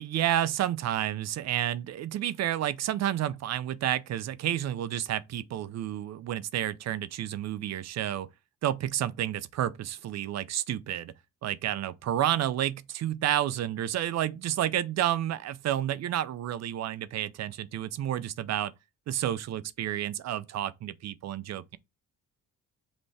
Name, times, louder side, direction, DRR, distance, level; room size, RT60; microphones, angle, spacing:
voice 1, 0.0-8.3 8.6-11.1 11.4-18.7 19.1-21.8, right 12 dB, 60° right, 0.5 m, -30 dB
5.4 x 3.0 x 3.3 m
cardioid pair, 90°, 30 cm